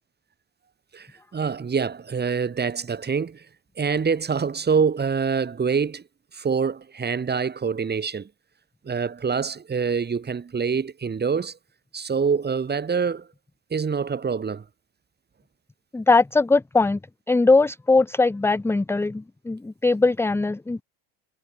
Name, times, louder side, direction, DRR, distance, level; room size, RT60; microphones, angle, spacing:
voice 1, 0.9-3.5 3.8-6.0 6.3-8.3 8.8-11.6 11.9-13.3 13.7-14.6, right 6 dB, 20° right, 3.8 m, -25 dB
voice 2, 15.9-17.0 17.3-20.8, left 3 dB, 5° left, 0.7 m, -20 dB
supercardioid pair, 120°, 45 cm